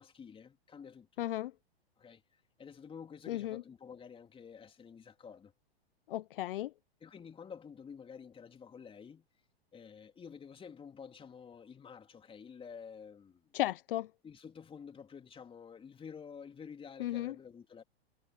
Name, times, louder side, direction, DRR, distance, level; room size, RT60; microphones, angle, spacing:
voice 1, 0.0-1.2 2.0-2.2 2.6-5.5 7.0-9.2 9.7-13.5 14.2-17.8, left 6 dB, 15° left, 2.9 m, -50 dB
voice 2, 1.2-1.5 3.3-3.6 6.1-6.7 13.5-14.1 17.0-17.3, left 15 dB, 60° left, 0.7 m, -35 dB
hypercardioid pair, 105°, 31 cm